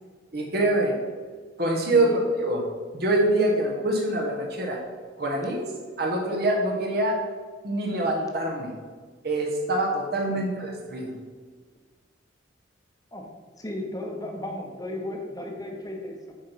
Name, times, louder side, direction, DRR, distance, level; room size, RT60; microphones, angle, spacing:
voice 1, 0.3-0.9 1.6-2.6 2.9-4.8 5.2-5.6 6.0-7.2 7.6-8.7 9.2-11.1, right 1 dB, 55° right, -1 dB, 1.3 m, -25 dB
voice 2, 13.6-16.2, left 1 dB, 20° left, 2 dB, 1.0 m, -35 dB
8.7 x 4.5 x 5.8 m, 1.5 s
head